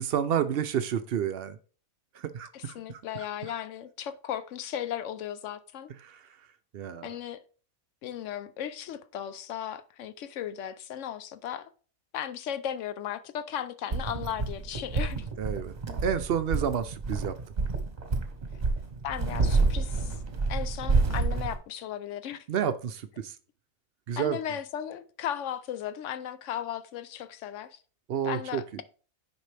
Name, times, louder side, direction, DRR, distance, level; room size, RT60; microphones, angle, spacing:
voice 1, 0.0-1.6 2.2-2.7 6.0-6.1 6.7-7.1 15.4-15.7 16.0-17.3 22.5-23.3 24.1-24.4 28.1-28.8, right 8 dB, 60° right, 0.7 m, -30 dB
voice 2, 2.5-5.9 7.0-7.4 8.0-11.7 12.1-15.3 19.0-20.2 20.5-22.5 24.2-27.8 28.2-28.8, left 10 dB, 70° left, 1.0 m, -36 dB
sound 1, 13.9-21.6, right 3 dB, 35° right, 1.1 m, -28 dB
9.4 x 5.4 x 3.3 m
omnidirectional pair, 1.4 m